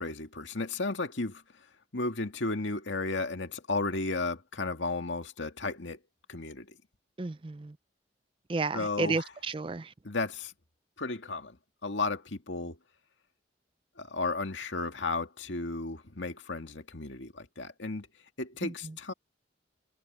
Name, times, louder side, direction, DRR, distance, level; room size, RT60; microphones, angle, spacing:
voice 1, 0.0-1.4 1.9-6.0 6.3-6.7 8.7-9.3 10.0-10.5 11.0-11.6 11.8-12.8 14.0-18.1 18.4-19.1, left 3 dB, 80° left, 2.0 m, -34 dB
voice 2, 7.2-7.7 8.5-9.9 18.6-18.9, right 3 dB, 30° right, 0.5 m, -32 dB
head